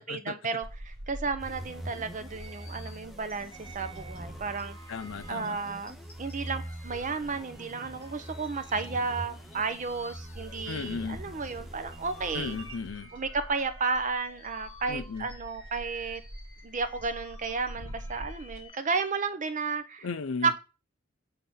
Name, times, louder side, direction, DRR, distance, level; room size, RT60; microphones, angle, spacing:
voice 1, 0.0-4.8 5.3-5.9 6.2-12.6 13.1-16.2 16.6-20.1 20.4-20.6, right 4 dB, 40° right, 0.8 m, -33 dB
sound 1, 0.6-18.7, right 1 dB, 65° right, 1.1 m, -48 dB
sound 2, 1.4-13.1, right 1 dB, ahead, 0.9 m, -44 dB
sound 3, 2.3-11.5 11.9-18.8, left 1 dB, 25° left, 3.1 m, -52 dB
voice 2, 4.9-5.5 10.7-11.2 12.3-13.1 14.9-15.3 20.0-20.5, left 4 dB, 85° left, 0.5 m, -35 dB
5.8 x 3.7 x 5.5 m
head